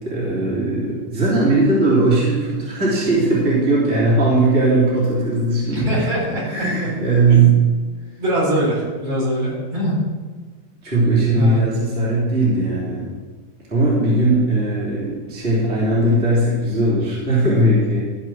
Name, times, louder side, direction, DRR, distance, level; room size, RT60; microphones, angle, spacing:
voice 1, 0.0-6.0 6.4-7.6 10.8-13.1 13.7-18.0, right 2 dB, 15° right, -8 dB, 2.9 m, -18 dB
voice 2, 5.7-6.9 7.3-7.5 8.2-10.0 11.3-11.7, right 1 dB, 40° right, -6 dB, 5.0 m, -23 dB
14.0 x 5.8 x 6.2 m, 1.4 s
omnidirectional pair, 4.2 m